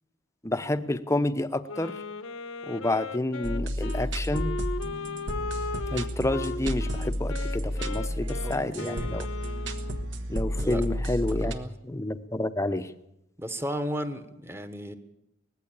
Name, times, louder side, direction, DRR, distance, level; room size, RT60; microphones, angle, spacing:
voice 1, 0.4-2.0 2.7-4.5 5.9-9.3 10.3-11.5 11.8-12.9, left 1 dB, 15° left, 11 dB, 0.8 m, -29 dB
Wind instrument woodwind instrument, 1.7-10.1, left 4 dB, 85° left, 1.1 m, -37 dB
sound 1, 3.4-11.5, equal, 65° right, 1.6 m, -31 dB
voice 2, 7.9-9.1 10.6-10.9 11.4-11.7 13.4-14.9, equal, 10° right, 10 dB, 1.3 m, -35 dB
19.5 x 15.5 x 8.7 m, 0.84 s
head